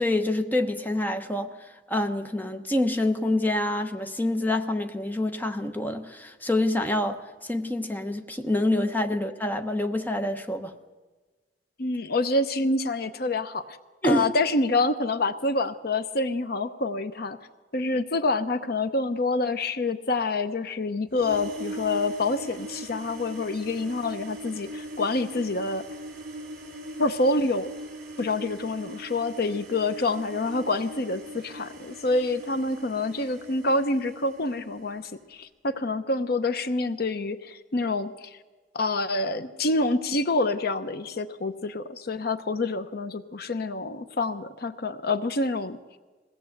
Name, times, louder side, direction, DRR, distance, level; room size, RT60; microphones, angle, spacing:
voice 1, 0.0-1.5 1.9-10.7 14.0-14.3, left 1 dB, 10° left, 6 dB, 1.0 m, -26 dB
voice 2, 11.8-13.8 14.0-17.4 17.7-25.8 27.0-27.7 28.2-38.4 38.7-45.8, left 2 dB, 55° left, 11 dB, 0.8 m, -27 dB
sound 1, 21.1-35.0, right 1 dB, 55° right, 3.7 m, -41 dB
21.5 x 17.0 x 7.9 m, 1.3 s
head